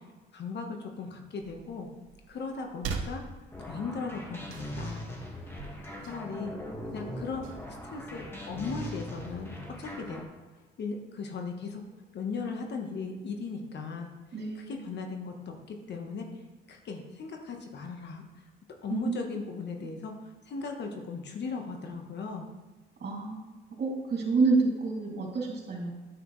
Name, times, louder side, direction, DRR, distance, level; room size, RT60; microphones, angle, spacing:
voice 1, 0.3-1.9 2.3-3.2 3.6-5.0 5.6-5.7 6.0-6.5 6.9-10.2 10.8-11.8 12.1-14.1 14.7-16.3 16.7-18.2 18.8-20.1 20.5-22.5, left 4 dB, 60° left, 3 dB, 1.3 m, -37 dB
sound 1, 1.4-8.9, right 5 dB, 80° right, 0.9 m, -44 dB
sound 2, 3.5-10.2, left 1 dB, 10° left, 1.9 m, -40 dB
voice 2, 14.3-14.8 18.9-19.3 19.8-19.9 23.0-25.9, right 4 dB, 55° right, -1 dB, 2.7 m, -29 dB
9.4 x 8.6 x 3.2 m, 1.2 s
cardioid pair, 90°, 20 cm